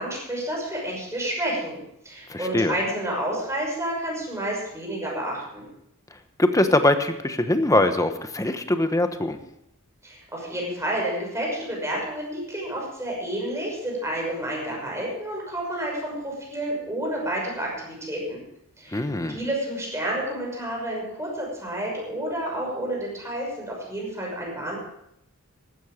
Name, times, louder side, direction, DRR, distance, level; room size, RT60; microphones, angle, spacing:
voice 1, 0.0-5.6 10.0-18.4 18.8-19.0 19.3-24.8, right 1 dB, 15° right, -2 dB, 6.1 m, -30 dB
voice 2, 2.3-2.8 6.4-9.4 18.9-19.4, left 1 dB, 15° left, 8 dB, 1.1 m, -22 dB
15.0 x 13.0 x 5.1 m, 0.79 s
head